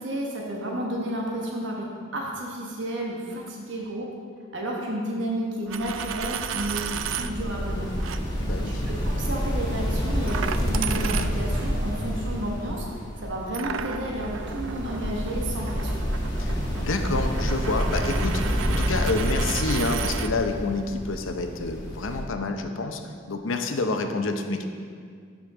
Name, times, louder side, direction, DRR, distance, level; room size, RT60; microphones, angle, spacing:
voice 1, 0.0-4.1 4.5-7.9 8.7-12.8 13.2-16.0, right 1 dB, 65° right, -2 dB, 1.2 m, -32 dB
Coin (dropping), 5.6-7.3 8.0-8.2 10.3-11.7 13.5-20.3, right 8 dB, 80° right, 0.4 m, -34 dB
sound 1, 5.7-22.2, equal, 20° left, 1.5 m, -29 dB
voice 2, 8.4-8.9 16.4-23.0 23.3-24.6, left 3 dB, 80° left, 5 dB, 0.7 m, -28 dB
13.0 x 5.1 x 3.7 m, 2.1 s
head